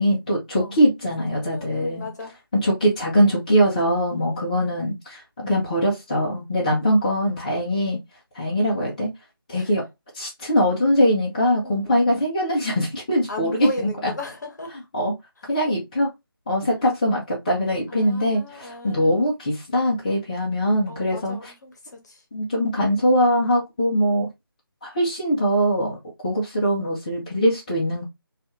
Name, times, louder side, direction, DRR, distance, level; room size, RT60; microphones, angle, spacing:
voice 1, 0.0-2.1 2.5-8.0 8.3-9.1 9.5-9.8 10.1-14.1 14.9-15.1 15.5-16.1 16.5-21.5 22.3-24.3 24.8-26.0 26.2-28.0, equal, 20° left, 0.5 m, -22 dB
voice 2, 1.5-2.4 4.1-4.5 6.8-7.2 9.5-9.7 11.6-12.3 13.3-14.8 17.9-19.3 20.9-22.2, left 2 dB, 50° left, 0.9 m, -37 dB
2.4 x 2.4 x 2.9 m
figure-of-eight pair, 160°, 12 cm